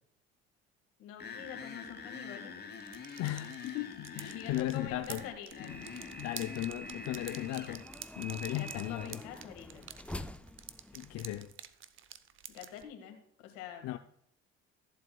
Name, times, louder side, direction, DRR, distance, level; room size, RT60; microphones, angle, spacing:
voice 1, 1.0-2.5 4.3-5.8 8.4-9.9 12.5-13.2 13.4-14.0, left 8 dB, 80° left, 1.9 m, -46 dB
sound 1, 1.2-7.8, left 6 dB, 35° left, 1.3 m, -46 dB
sound 2, 2.7-12.8, right 9 dB, 45° right, 0.7 m, -49 dB
voice 2, 3.2-5.2 5.6-5.8 6.2-7.8 8.2-9.2 10.9-11.5 13.8-14.0, left 14 dB, 60° left, 0.6 m, -36 dB
sound 3, 5.7-11.5, equal, 5° left, 0.4 m, -47 dB
14.5 x 7.7 x 2.3 m
supercardioid pair, 80°, 29 cm